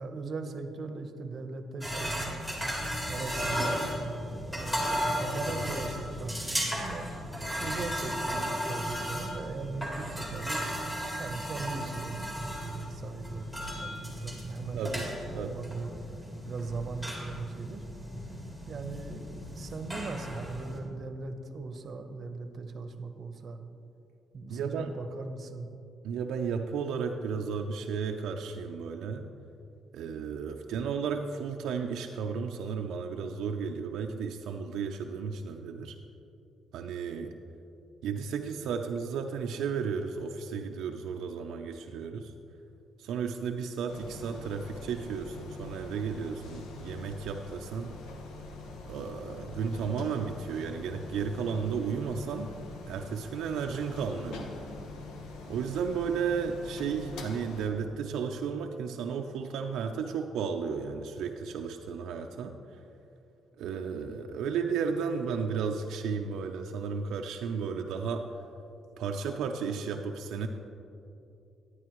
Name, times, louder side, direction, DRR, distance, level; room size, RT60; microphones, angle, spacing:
voice 1, 0.0-2.4 3.1-7.1 7.6-10.6 11.2-15.9 16.4-17.9 18.7-23.6 24.3-25.7, right 3 dB, 50° right, 7 dB, 0.7 m, -39 dB
sound 1, 1.8-20.8, equal, 10° left, 2.1 m, -35 dB
voice 2, 14.7-15.6 24.5-24.9 26.0-29.3 29.9-36.0 36.7-37.3 38.0-42.3 43.0-48.0 48.9-52.6 52.9-54.5 55.5-62.6 63.6-68.3 69.0-70.5, right 6 dB, 85° right, 3 dB, 0.4 m, -33 dB
sound 2, 43.9-57.7, left 2 dB, 85° left, 0.9 m, -44 dB
11.0 x 9.7 x 3.0 m, 2.7 s
cardioid pair, 90°, 0 cm